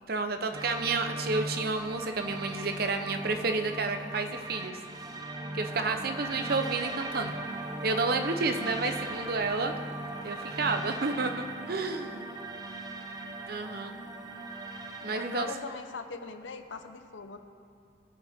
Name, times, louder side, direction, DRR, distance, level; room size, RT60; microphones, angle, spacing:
voice 1, 0.1-4.8 5.5-7.3 7.8-9.7 10.2-12.2 13.5-13.9 15.0-15.5, right 3 dB, 55° right, 7 dB, 0.8 m, -30 dB
sound 1, 0.5-15.6, right 2 dB, 20° right, 0.7 m, -38 dB
voice 2, 15.1-17.4, left 4 dB, 85° left, 8 dB, 0.7 m, -41 dB
20.0 x 7.7 x 3.6 m, 2.5 s
head